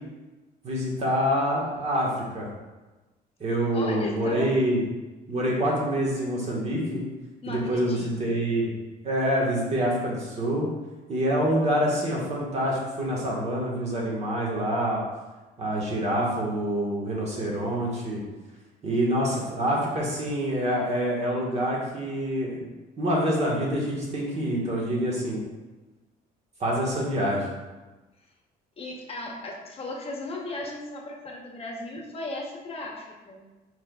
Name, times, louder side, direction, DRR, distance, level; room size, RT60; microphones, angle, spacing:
voice 1, 0.6-2.5 3.4-4.8 5.3-7.0 7.5-8.7 9.0-10.7 11.1-15.0 15.6-18.2 18.8-22.6 23.0-25.4 26.6-27.5, equal, 40° right, -3 dB, 1.5 m, -26 dB
voice 2, 3.7-4.6 7.4-8.4 28.8-33.5, left 2 dB, 35° left, 0 dB, 0.9 m, -36 dB
4.7 x 4.6 x 2.3 m, 1.2 s
cardioid pair, 110°, 17 cm